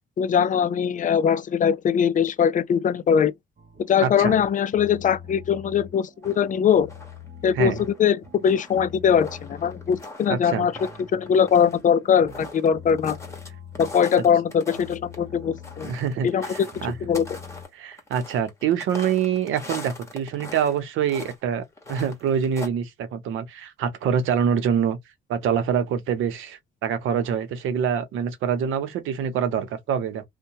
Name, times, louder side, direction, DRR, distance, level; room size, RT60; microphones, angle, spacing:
voice 1, 0.2-3.3 3.9-6.9 7.4-10.7 11.1-13.2 13.8-15.9 16.2-16.7 17.0-17.2, left 7 dB, 40° left, 0.4 m, -21 dB
sound 1, 3.6-17.6, left 5 dB, 45° right, 0.8 m, -44 dB
voice 2, 4.0-4.4 7.5-7.8 10.3-10.7 15.8-16.9 17.7-25.0 25.3-30.2, right 8 dB, 85° right, 0.7 m, -25 dB
sound 2, 6.2-7.3 7.6-13.5 13.7-20.8 21.0-21.4 21.7-22.7, left 2 dB, 15° left, 1.3 m, -41 dB
2.7 x 2.1 x 2.7 m
cardioid pair, 90°, 20 cm